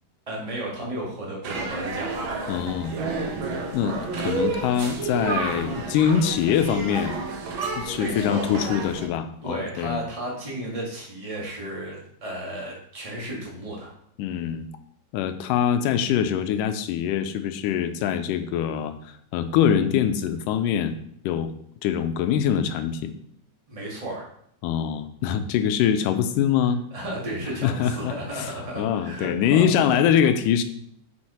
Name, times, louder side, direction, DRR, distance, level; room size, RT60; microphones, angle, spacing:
voice 1, 0.3-2.1 8.0-8.5 9.4-13.9 23.7-24.3 26.9-30.0, right 1 dB, 20° right, -3 dB, 0.9 m, -33 dB
sound 1, 1.4-9.1, right 3 dB, 75° right, 1.1 m, -30 dB
voice 2, 2.5-3.2 3.7-7.1 7.8-10.0 14.2-14.6 15.1-18.9 19.3-20.9 21.2-21.5 21.8-23.1 24.6-26.8 27.6-30.6, left 8 dB, 90° left, 9 dB, 2.2 m, -24 dB
6.3 x 5.7 x 4.2 m, 0.67 s
omnidirectional pair, 3.7 m